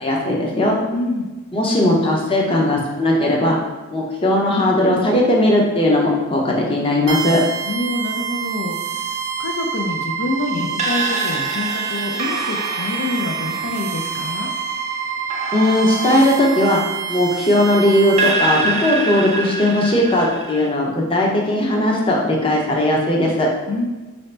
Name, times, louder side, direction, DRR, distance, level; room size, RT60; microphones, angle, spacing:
voice 1, 0.0-0.8 1.5-3.6 3.9-7.4 15.5-16.8 17.1-23.5, left 1 dB, 25° left, -2 dB, 0.6 m, -18 dB
voice 2, 0.9-1.3 7.7-14.5 23.7-23.9, left 2 dB, 70° left, 3 dB, 0.4 m, -26 dB
sound 1, 7.1-18.3, right 7 dB, 80° right, 0.6 m, -27 dB
sound 2, 10.8-17.6 18.2-20.7, right 3 dB, 30° right, 0.3 m, -26 dB
4.0 x 2.7 x 3.2 m, 1.2 s
head